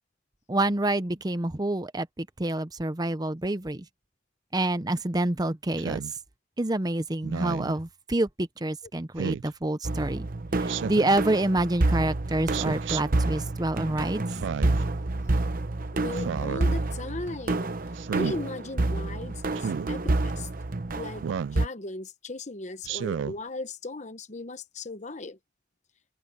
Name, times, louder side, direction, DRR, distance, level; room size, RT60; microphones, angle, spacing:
voice 1, 0.5-3.8 4.5-6.0 6.6-10.3 10.5-14.2, right 1 dB, 20° right, 0.7 m, -27 dB
Speech synthesizer, 5.8-6.1 7.2-7.7 9.2-9.5 10.7-11.2 12.5-13.0 14.3-14.8 16.1-16.6 18.0-18.4 19.6-19.9 21.2-21.6 22.8-23.4, right 7 dB, 75° right, 0.3 m, -32 dB
sound 1, 9.8-21.7, right 2 dB, 50° right, 0.9 m, -28 dB
voice 2, 15.9-17.7 18.1-20.5 21.0-21.2 21.5-25.4, left 2 dB, 40° left, 1.0 m, -37 dB
open air
head